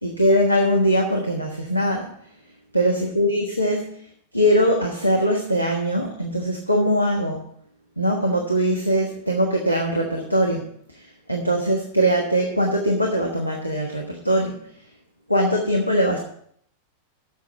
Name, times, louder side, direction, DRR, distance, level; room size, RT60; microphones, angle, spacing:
voice 1, 0.0-2.1 2.7-3.9 4.3-7.4 8.0-10.6 10.9-14.6 15.3-16.2, equal, 90° left, 1 dB, 1.2 m, -21 dB
8.4 x 6.2 x 7.1 m, 0.65 s
figure-of-eight pair, 90°, 0 cm